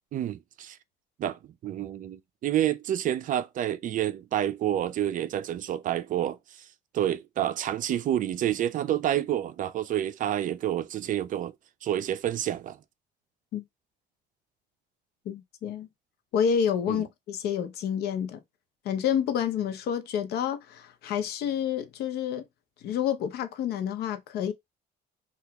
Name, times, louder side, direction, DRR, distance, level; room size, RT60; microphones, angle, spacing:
voice 1, 0.1-0.8 1.2-6.7 6.9-11.5 11.8-12.8 16.9-17.0, right 11 dB, 50° right, 0.4 m, -29 dB
voice 2, 15.3-15.9 16.3-18.4 18.8-22.4 22.8-24.5, left 8 dB, 70° left, 0.7 m, -29 dB
2.9 x 2.4 x 3.4 m
cardioid pair, 110°, 17 cm